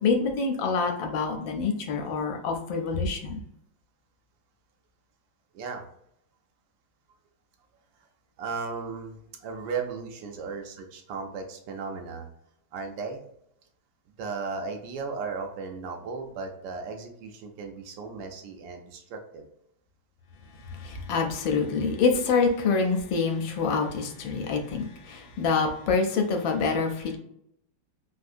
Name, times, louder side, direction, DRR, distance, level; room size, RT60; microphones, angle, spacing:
voice 1, 0.0-3.4 20.7-27.2, left 4 dB, 75° left, 3 dB, 1.3 m, -26 dB
voice 2, 8.4-12.3 12.7-13.2 14.2-19.5, right 4 dB, 75° right, 3 dB, 1.2 m, -36 dB
3.5 x 2.6 x 2.4 m, 0.74 s
omnidirectional pair, 2.2 m